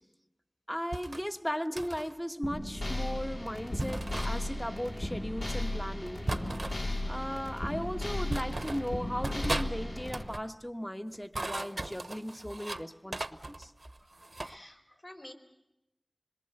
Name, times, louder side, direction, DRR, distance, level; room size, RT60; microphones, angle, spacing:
voice 1, 0.7-6.3 7.1-13.7, equal, 10° left, 1.2 m, -37 dB
sound 1, 0.9-1.2 1.8-2.1 3.8-4.3 6.3-6.8 7.7-7.8 8.3-8.9 9.2-9.7 10.0-10.5 11.1-12.8 13.1-14.6, right 2 dB, 55° right, 0.9 m, -37 dB
sound 2, 2.4-10.2, left 1 dB, 75° left, 5.2 m, -35 dB
voice 2, 14.0-15.3, left 1 dB, 45° left, 4.6 m, -51 dB
27.0 x 22.0 x 6.8 m
wide cardioid pair, 45°, 0 cm